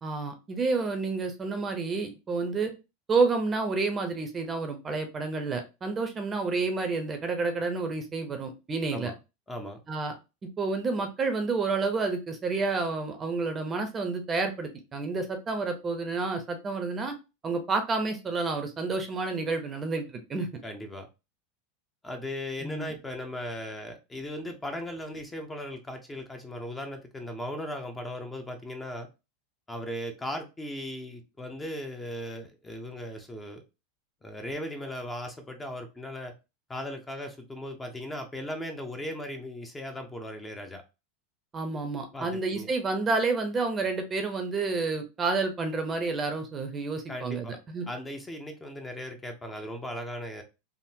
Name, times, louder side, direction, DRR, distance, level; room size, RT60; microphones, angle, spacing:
voice 1, 0.0-2.7 3.1-9.1 9.9-10.1 10.6-17.1 17.4-20.5 22.6-23.0 41.5-47.9, right 3 dB, 25° right, 0.7 m, -29 dB
voice 2, 9.5-9.8 20.6-21.1 22.0-29.1 29.7-33.6 34.2-36.3 36.7-40.8 42.1-42.7 47.1-47.6 47.9-50.4, left 1 dB, 15° left, 0.7 m, -37 dB
3.6 x 2.1 x 2.7 m
hypercardioid pair, 110°, 0 cm